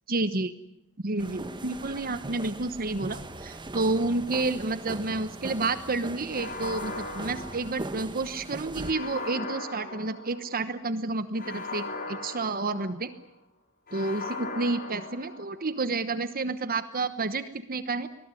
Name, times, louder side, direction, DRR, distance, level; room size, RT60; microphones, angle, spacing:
voice 1, 0.1-0.5 1.0-13.1 13.9-18.1, right 3 dB, 40° right, 12 dB, 1.1 m, -30 dB
sound 1, 1.2-8.9, right 2 dB, 20° right, 1.4 m, -40 dB
sound 2, 6.3-8.2 8.8-10.6 11.3-13.2 13.9-15.7, left 3 dB, 45° left, 5.7 m, -38 dB
24.0 x 20.5 x 9.9 m, 0.83 s
head